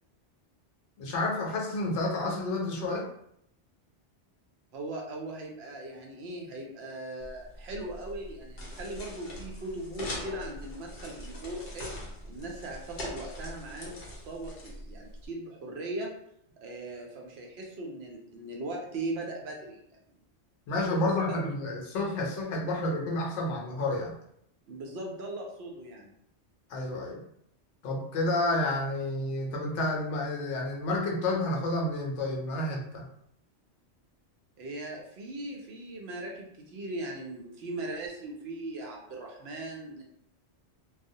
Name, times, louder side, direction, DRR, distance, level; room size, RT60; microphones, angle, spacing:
voice 1, 1.0-3.1 20.7-24.1 26.7-27.2 27.8-33.0, left 2 dB, 80° left, -1 dB, 0.9 m, -30 dB
voice 2, 4.7-12.0 12.3-16.1 16.6-19.8 20.8-20.9 21.3-21.5 24.7-26.1 34.6-40.0, right 2 dB, 70° right, 0 dB, 0.8 m, -39 dB
sound 1, 7.2-15.3, equal, 55° left, 0.7 m, -42 dB
2.3 x 2.0 x 2.6 m, 0.73 s
omnidirectional pair, 1.2 m